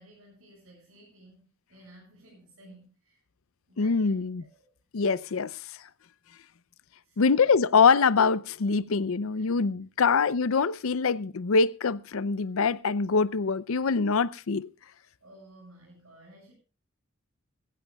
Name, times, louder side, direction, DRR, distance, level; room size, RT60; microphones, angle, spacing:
voice 1, 0.0-3.2 3.7-4.7 7.0-7.7 9.3-9.6 10.0-10.1 15.2-16.5, right 1 dB, 75° right, 7.7 m, -55 dB
voice 2, 3.8-4.4 4.9-5.6 7.2-14.7, left 5 dB, 70° left, 0.6 m, -24 dB
22.0 x 15.0 x 2.3 m
head